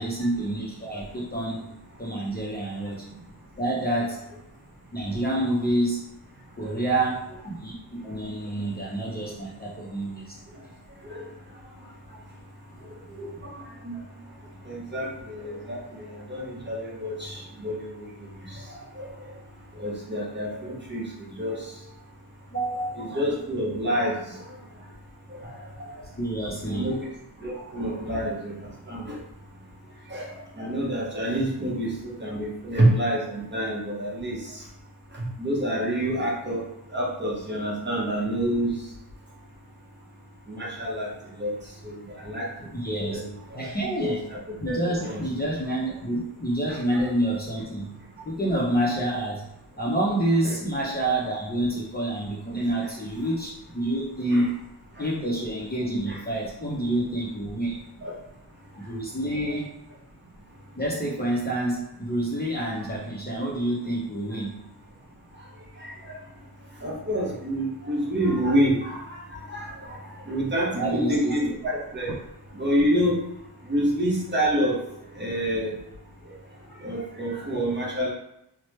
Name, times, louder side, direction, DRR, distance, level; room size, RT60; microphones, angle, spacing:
voice 1, 0.0-1.7 2.0-3.1 3.6-4.2 4.9-6.0 6.6-7.7 8.0-10.4 22.5-23.2 26.2-26.9 42.7-43.2 43.5-44.2 44.6-47.9 48.2-49.4 49.8-54.5 55.0-57.8 58.8-59.7 60.8-64.5 70.8-71.5, right 1 dB, 25° left, -5 dB, 0.5 m, -28 dB
voice 2, 13.2-13.9 14.7-15.8 16.3-18.1 19.0-19.1 19.8-21.0 21.4-21.6 23.0-24.1 26.6-27.0 27.4-28.5 28.9-29.2 30.1-30.3 30.6-34.4 35.4-36.6 36.9-38.7 40.5-41.1 41.4-41.5 41.8-41.9 42.3-42.5 42.9-43.3 44.0-44.4 44.7-45.2 46.7-47.1 50.4-50.6 54.3-54.5 58.0-58.1 65.8-65.9 66.8-69.2 69.5-70.0 70.3-72.1 72.5-73.1 73.7-74.8 75.2-75.7 76.8-78.1, equal, 25° right, -4 dB, 0.8 m, -27 dB
3.0 x 2.0 x 3.1 m, 0.81 s
wide cardioid pair, 120°, 42 cm